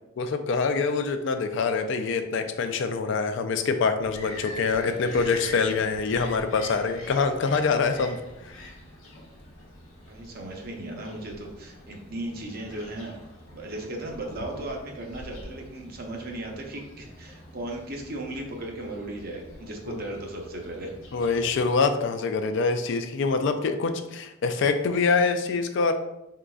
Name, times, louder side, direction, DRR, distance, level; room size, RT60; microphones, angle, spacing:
voice 1, 0.2-8.2 8.5-8.6 19.9-20.0 21.1-25.9, left 4 dB, 60° left, 8 dB, 0.3 m, -25 dB
Bird vocalization bird call bird song, 4.0-21.7, left 1 dB, 80° left, 0.9 m, -45 dB
voice 2, 10.1-13.2 13.5-20.9, right 1 dB, 45° right, 1 dB, 0.7 m, -36 dB
4.0 x 3.8 x 2.3 m, 0.90 s
head